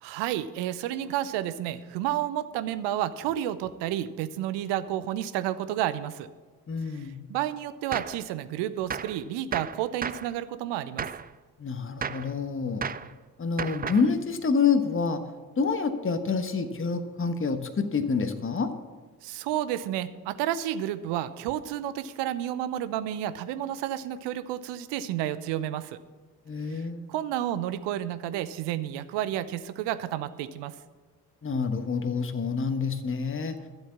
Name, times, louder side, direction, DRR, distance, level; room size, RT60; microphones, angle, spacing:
voice 1, 0.0-6.3 6.9-11.1 19.2-26.0 26.7-26.8 27.1-30.8, right 12 dB, 65° right, 14 dB, 0.8 m, -31 dB
voice 2, 6.7-7.2 11.6-12.8 13.4-15.2 15.6-18.7 26.5-27.1 31.4-33.5, left 5 dB, 25° left, 9 dB, 1.3 m, -27 dB
Gunshot gunfire, 7.9-8.2 8.9-9.2 9.5-10.3 11.0-11.3 12.0-12.3 12.8-13.1 13.6-14.1, right 6 dB, 20° right, 0.5 m, -33 dB
12.0 x 8.0 x 7.3 m, 1.4 s
figure-of-eight pair, 40°, 45 cm